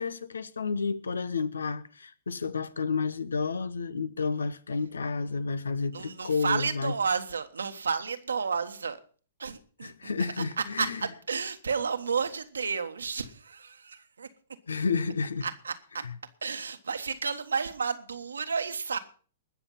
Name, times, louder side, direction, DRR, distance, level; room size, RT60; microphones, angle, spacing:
voice 1, 0.0-6.9 9.8-11.0 14.7-15.5 16.0-16.1, left 4 dB, 85° left, 1.0 m, -31 dB
voice 2, 5.9-9.0 9.4-14.3 15.4-16.0 16.4-19.0, right 5 dB, 85° right, 1.5 m, -32 dB
20.0 x 7.2 x 5.6 m
hypercardioid pair, 120°, 0 cm